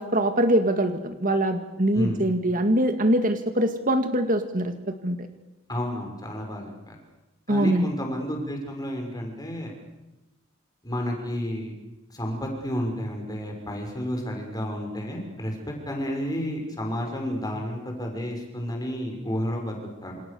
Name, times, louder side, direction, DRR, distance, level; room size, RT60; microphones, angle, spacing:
voice 1, 0.0-4.7 5.0-5.2 7.5-7.9, right 1 dB, 40° right, 7 dB, 2.0 m, -23 dB
voice 2, 1.9-2.3 5.7-7.0 7.5-9.7 10.8-11.7 12.1-15.5 15.9-20.2, equal, 20° left, 2 dB, 6.1 m, -31 dB
28.0 x 27.5 x 7.0 m, 1.0 s
head